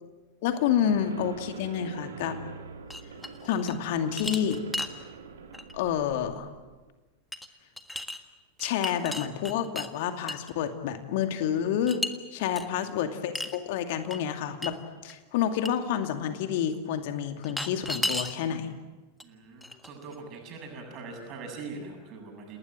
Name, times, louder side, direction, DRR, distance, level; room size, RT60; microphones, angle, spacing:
voice 1, 0.4-2.4 3.4-4.6 5.7-6.5 8.6-12.0 12.3-14.8 15.0-18.7, left 9 dB, 50° left, 7 dB, 2.4 m, -29 dB
sound 1, 0.8-6.8, right 5 dB, 65° right, 3.0 m, -45 dB
sound 2, 2.9-3.8 4.1-5.0 5.5-5.7 7.3-7.5 7.8-8.2 8.6-9.9 10.3-10.5 11.9-12.1 12.6-12.7 13.3-13.6 14.1-14.2 14.6-14.7 15.1-15.2 15.6-15.7 17.4-18.3 19.2-19.3 19.6-20.1, left 1 dB, 5° left, 1.6 m, -34 dB
voice 2, 19.2-22.6, right 4 dB, 35° right, 2 dB, 7.5 m, -42 dB
29.5 x 20.0 x 7.6 m, 1.2 s
figure-of-eight pair, 90°, 0 cm